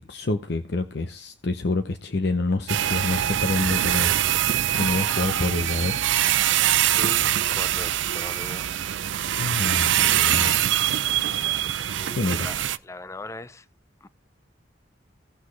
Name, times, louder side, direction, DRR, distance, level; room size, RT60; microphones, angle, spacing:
voice 1, 0.1-6.0 9.4-11.0 12.1-12.5, left 2 dB, 60° left, 0.7 m, -28 dB
sound 1, 2.7-12.8, right 12 dB, 80° right, 0.5 m, -23 dB
voice 2, 7.0-8.7 11.9-13.7 14.0-14.1, left 2 dB, 15° left, 0.4 m, -39 dB
17.0 x 6.2 x 3.2 m
head